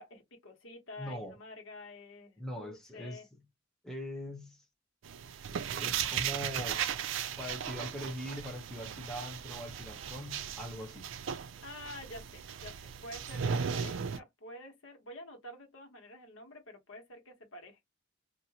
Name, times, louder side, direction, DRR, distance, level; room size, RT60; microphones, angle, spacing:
voice 1, 0.0-3.3 11.6-17.9, left 1 dB, 85° left, 1.3 m, -49 dB
voice 2, 1.0-1.4 2.4-3.4 3.8-4.6 5.8-6.8 7.4-11.1, equal, 5° left, 0.7 m, -41 dB
sound 1, 5.0-14.2, right 7 dB, 70° right, 0.4 m, -37 dB
2.7 x 2.5 x 2.8 m
head